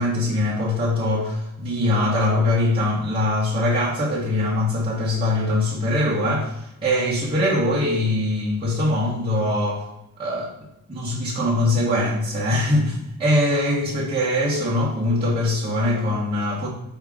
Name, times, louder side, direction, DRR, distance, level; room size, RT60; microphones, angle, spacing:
voice 1, 0.0-9.8 10.2-10.5 10.9-16.7, left 1 dB, 20° right, -9 dB, 1.0 m, -22 dB
4.6 x 2.8 x 3.5 m, 0.88 s
wide cardioid pair, 150°, 29 cm